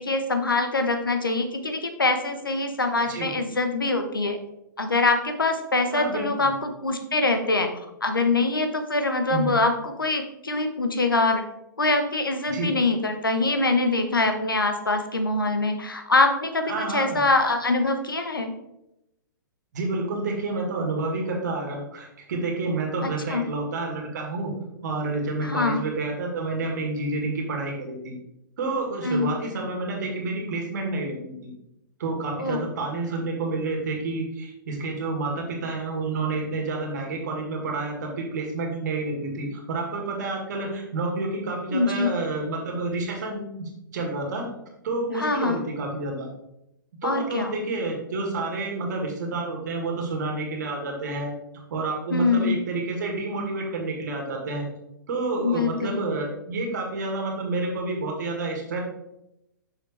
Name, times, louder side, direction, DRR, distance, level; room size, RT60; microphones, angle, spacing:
voice 1, 0.0-4.4 4.8-7.7 8.0-11.4 11.8-18.5 23.0-23.5 25.4-25.8 29.0-29.3 32.4-32.6 41.7-42.1 45.2-45.6 47.0-47.5 52.1-52.6 55.4-56.0, left 3 dB, 85° left, 6 dB, 1.0 m, -24 dB
voice 2, 5.9-6.5 9.3-9.5 12.5-12.7 16.7-17.2 19.7-24.5 24.8-28.2 28.6-31.5 32.0-44.5 44.8-46.3 47.0-51.3 51.7-54.7 55.1-58.8, right 3 dB, 55° right, 1 dB, 2.1 m, -29 dB
6.7 x 6.3 x 3.3 m, 0.86 s
figure-of-eight pair, 115°, 11 cm